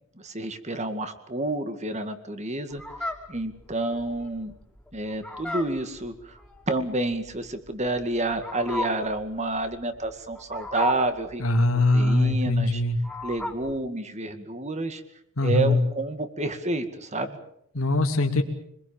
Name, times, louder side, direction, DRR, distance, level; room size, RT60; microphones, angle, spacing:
voice 1, 0.2-4.5 4.9-6.4 6.7-11.6 11.9-12.8 13.2-15.0 15.4-17.4, right 2 dB, 30° right, 9 dB, 2.1 m, -29 dB
Fowl, 2.7-13.8, left 1 dB, 5° left, 3.4 m, -36 dB
voice 2, 11.4-13.0 15.4-15.8 17.7-18.4, left 2 dB, 65° left, 3 dB, 2.8 m, -22 dB
25.5 x 21.0 x 7.2 m, 0.73 s
head